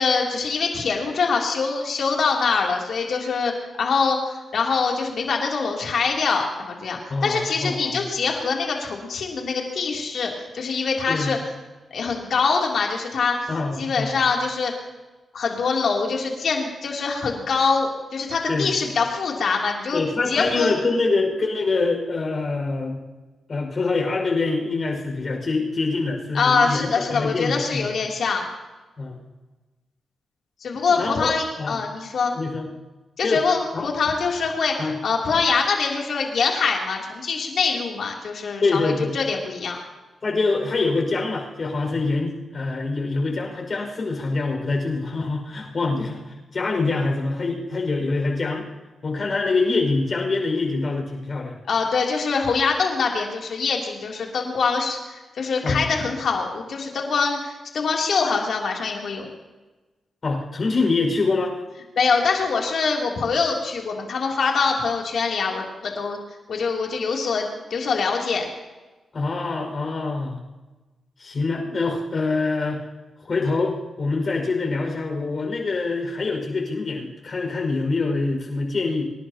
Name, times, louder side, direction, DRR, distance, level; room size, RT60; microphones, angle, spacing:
voice 1, 0.0-3.5 3.8-4.2 4.5-11.4 11.9-13.5 13.8-14.7 15.3-20.0 20.3-20.8 26.3-28.4 30.6-32.3 33.2-39.8 51.7-59.3 62.0-66.2 66.5-68.5, left 5 dB, 70° left, 0 dB, 3.2 m, -24 dB
voice 2, 7.1-8.0 11.1-11.4 13.5-14.2 18.5-18.7 19.9-23.0 23.5-27.9 29.0-29.2 30.7-31.3 31.6-31.8 32.3-32.7 33.2-33.4 33.7-33.9 34.8-35.0 38.6-39.2 40.2-48.6 49.0-51.6 55.6-55.9 60.2-61.6 69.1-70.4 71.2-72.8 73.3-79.1, left 3 dB, 50° left, 1 dB, 5.7 m, -25 dB
27.0 x 11.5 x 3.0 m, 1.2 s
cardioid pair, 60°, 0 cm